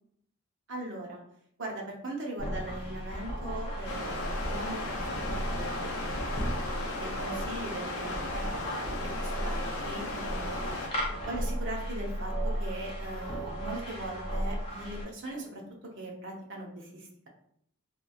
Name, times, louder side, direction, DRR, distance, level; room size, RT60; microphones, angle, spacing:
voice 1, 0.7-1.2 1.6-6.2 6.4-8.5 8.9-10.7 11.2-15.6 16.0-17.3, right 1 dB, 55° right, 0 dB, 0.7 m, -40 dB
sound 1, 2.4-15.0, equal, 30° left, 0.5 m, -35 dB
sound 2, 3.9-10.9, left 2 dB, 75° left, 0.6 m, -36 dB
3.0 x 2.5 x 2.3 m, 0.70 s
head